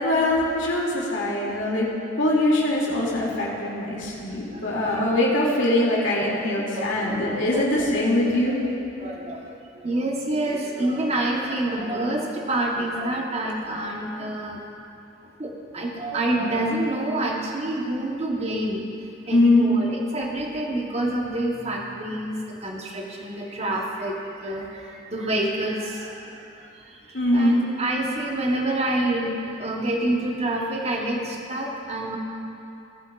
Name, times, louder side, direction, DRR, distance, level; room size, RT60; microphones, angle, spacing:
voice 1, 0.0-1.9 2.2-8.6 19.3-19.7 27.1-27.6, left 1 dB, 75° left, -5 dB, 2.5 m, -22 dB
voice 2, 4.5-5.0 6.7-7.9 8.6-8.7 9.0-9.6 9.8-14.6 15.4-18.8 19.3-24.2 24.4-26.4 27.1-32.2, right 1 dB, 30° right, -1 dB, 1.0 m, -27 dB
18.5 x 8.6 x 2.4 m, 2.7 s
head